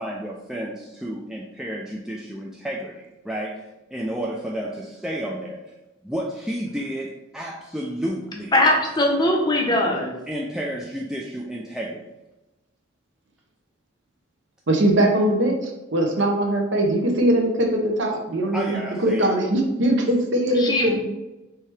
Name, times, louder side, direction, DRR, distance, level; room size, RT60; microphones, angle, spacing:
voice 1, 0.0-5.7 6.0-8.5 10.3-12.0 18.5-19.4, equal, 5° right, -3 dB, 0.3 m, -31 dB
voice 2, 8.5-10.1 20.5-21.0, left 1 dB, 20° left, 1 dB, 0.7 m, -20 dB
voice 3, 14.7-20.9, right 1 dB, 65° right, 2 dB, 0.8 m, -21 dB
4.5 x 3.3 x 3.3 m, 1.0 s
head